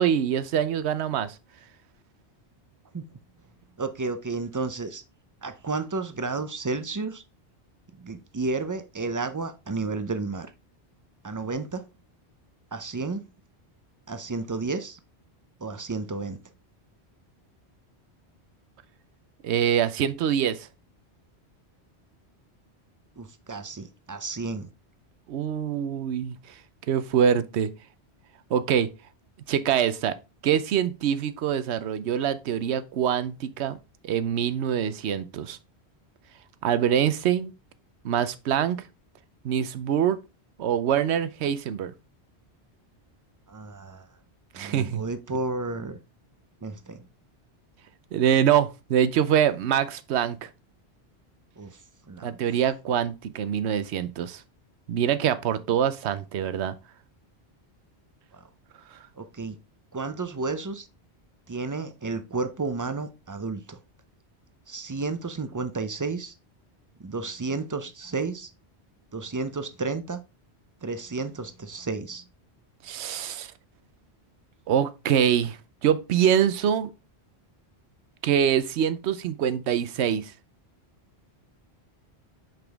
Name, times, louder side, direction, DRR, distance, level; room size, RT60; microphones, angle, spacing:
voice 1, 0.0-1.3 19.4-20.7 25.3-26.4 26.9-27.7 28.5-28.9 29.5-30.1 30.4-33.8 34.0-35.6 36.6-37.5 38.0-38.8 39.4-40.2 40.6-41.9 44.5-45.0 48.1-50.5 52.2-54.4 54.9-56.8 72.8-73.5 74.7-76.9 78.2-80.3, right 9 dB, 80° right, 0.9 m, -24 dB
voice 2, 3.8-5.0 5.4-7.2 8.0-10.5 11.2-11.8 12.7-13.2 14.1-15.0 15.6-16.4 23.2-24.7 43.5-44.1 44.6-46.0 46.6-47.1 51.6-51.8 52.1-52.4 58.3-58.4 59.2-59.6 59.9-60.9 61.5-63.8 64.7-66.3 67.0-68.5 69.1-70.2 70.8-72.2, right 3 dB, 30° right, 0.3 m, -32 dB
5.9 x 5.2 x 3.4 m
omnidirectional pair, 1.1 m